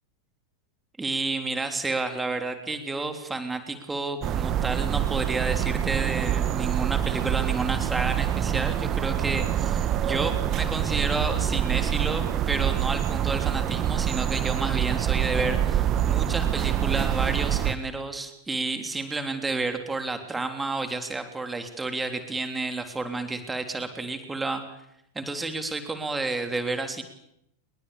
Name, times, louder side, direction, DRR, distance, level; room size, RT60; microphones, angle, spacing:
voice 1, 1.0-24.8 25.2-27.0, right 3 dB, 10° right, 6 dB, 3.4 m, -30 dB
sound 1, 4.2-17.7, right 10 dB, 30° right, 1.8 m, -26 dB
29.5 x 23.0 x 7.1 m, 0.79 s
figure-of-eight pair, 90°, 0 cm